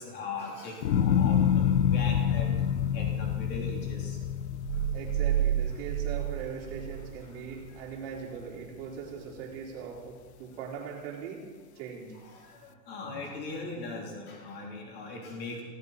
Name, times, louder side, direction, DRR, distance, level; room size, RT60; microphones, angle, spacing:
voice 1, 0.0-2.5 2.9-4.2 7.2-7.3 9.9-10.0 12.2-15.6, left 3 dB, 20° left, -1 dB, 2.9 m, -40 dB
sound 1, 0.8-7.1 7.6-8.2, left 9 dB, 40° left, 0.7 m, -27 dB
sound 2, 4.7-7.2 7.6-7.7, right 12 dB, 85° right, 1.1 m, -30 dB
voice 2, 4.9-11.4 11.8-12.2, right 6 dB, 35° right, -3 dB, 4.2 m, -40 dB
19.0 x 17.0 x 4.1 m, 1.5 s
supercardioid pair, 170°, 50 cm